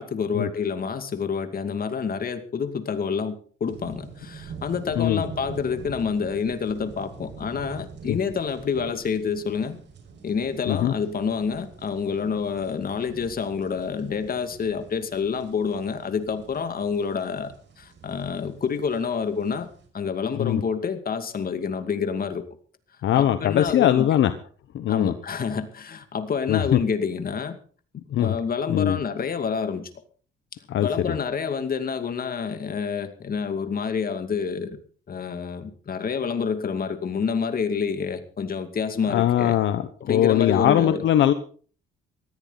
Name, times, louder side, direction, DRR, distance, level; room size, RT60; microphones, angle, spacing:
voice 1, 0.0-9.8 10.2-19.7 19.9-22.4 23.1-24.1 24.9-27.6 28.2-29.9 30.8-34.8 35.1-39.6 40.0-41.0, left 6 dB, 45° left, 9 dB, 2.5 m, -28 dB
sound 1, 3.7-19.9, right 6 dB, 65° right, 5.8 m, -45 dB
voice 2, 23.0-24.3 24.7-25.1 26.5-26.8 28.1-28.3 28.7-29.0 30.7-31.2 39.1-41.3, left 11 dB, 75° left, 11 dB, 1.2 m, -21 dB
19.0 x 14.0 x 4.1 m, 0.42 s
cardioid pair, 90°, 20 cm